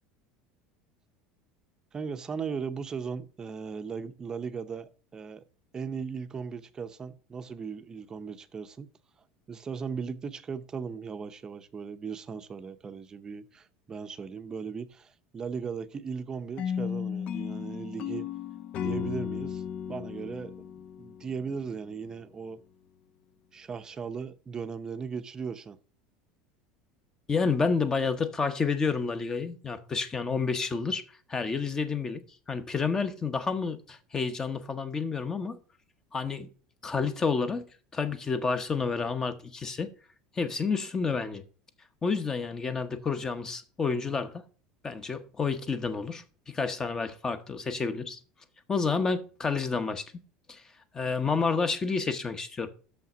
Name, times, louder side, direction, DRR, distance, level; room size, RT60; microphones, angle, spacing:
voice 1, 1.9-5.4 5.7-8.9 9.5-18.3 18.8-19.6 19.9-22.6 23.5-25.8, right 6 dB, 25° right, 0.6 m, -37 dB
sound 1, 16.6-21.7, left 8 dB, 45° left, 0.4 m, -35 dB
voice 2, 27.3-31.0 31.3-32.2 32.5-35.6 36.1-36.5 36.8-37.6 37.9-39.9 40.4-41.4 42.0-44.4 44.8-48.2 48.7-50.2 50.5-50.6 50.9-52.7, left 5 dB, 20° left, 0.9 m, -29 dB
6.5 x 5.7 x 6.0 m
supercardioid pair, 125°, 3 cm